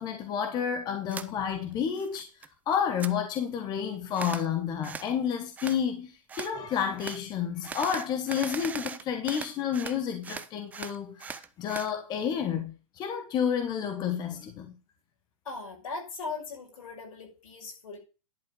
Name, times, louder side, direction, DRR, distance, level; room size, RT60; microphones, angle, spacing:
voice 1, 0.0-2.3 2.7-14.7, left 8 dB, 25° left, 1.3 m, -30 dB
sound 1, 1.1-1.3 1.7-2.5 2.7-3.1 4.1-4.5 4.8-5.1 5.6-5.8 6.3-6.5 7.0-7.2 7.6-10.0 10.2-11.9, right 6 dB, 10° right, 0.4 m, -39 dB
voice 2, 15.4-18.0, left 4 dB, 80° left, 6.0 m, -39 dB
11.0 x 4.8 x 6.2 m
hypercardioid pair, 150°, 17 cm